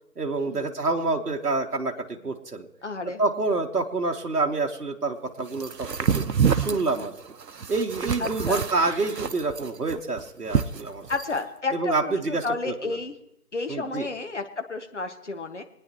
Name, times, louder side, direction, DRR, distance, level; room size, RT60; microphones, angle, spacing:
voice 1, 0.2-2.7 3.2-6.2 6.5-7.2 7.7-11.0 11.7-13.0 13.7-14.1, right 3 dB, 65° right, 2 dB, 1.4 m, -27 dB
voice 2, 2.8-3.2 8.2-8.6 11.1-13.1 13.5-15.6, left 3 dB, 45° left, 6 dB, 1.1 m, -31 dB
sound 1, 5.6-11.4, right 6 dB, 85° right, 0.8 m, -27 dB
25.0 x 9.5 x 3.0 m, 0.85 s
figure-of-eight pair, 165°, 49 cm